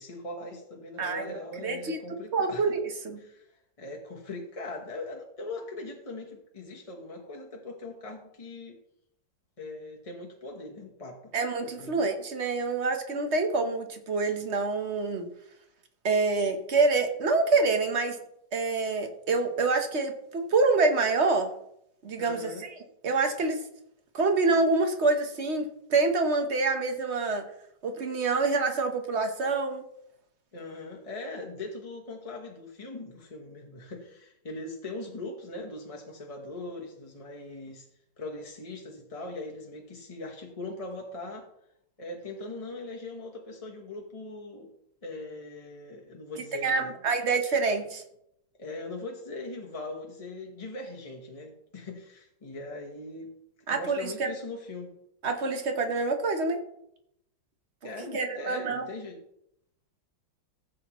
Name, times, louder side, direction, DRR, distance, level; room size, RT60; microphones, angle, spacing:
voice 1, 0.0-2.7 3.2-8.8 9.6-11.3 11.8-11.9 22.2-22.6 30.5-37.9 38.2-41.5 42.0-44.7 45.0-46.9 48.6-53.3 53.7-54.9 57.8-59.2, left 2 dB, 25° left, -1 dB, 0.8 m, -40 dB
voice 2, 1.0-1.3 1.6-2.0 2.3-3.2 11.3-15.3 16.0-18.2 18.5-21.5 22.0-22.7 23.0-23.6 24.1-27.4 27.8-29.8 46.6-48.0 53.7-54.3 55.2-56.6 58.1-58.9, right 3 dB, 40° right, 6 dB, 1.1 m, -26 dB
15.0 x 7.7 x 3.1 m, 0.77 s
omnidirectional pair, 2.1 m